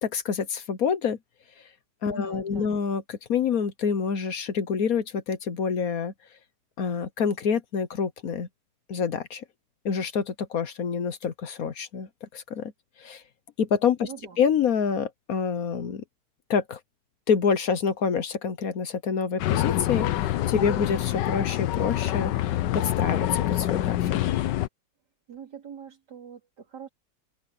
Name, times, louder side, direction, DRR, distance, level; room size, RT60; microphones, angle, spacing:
voice 1, 0.0-1.2 2.0-6.1 6.8-8.5 8.9-9.4 9.8-12.7 13.0-13.2 13.6-14.1 14.4-16.0 16.5-16.8 17.3-24.1, left 6 dB, 60° left, 1.3 m, -27 dB
voice 2, 2.1-2.8 14.0-14.4 25.3-26.9, right 8 dB, 70° right, 3.4 m, -43 dB
sound 1, 19.4-24.7, left 13 dB, 90° left, 1.4 m, -26 dB
omnidirectional pair, 1.9 m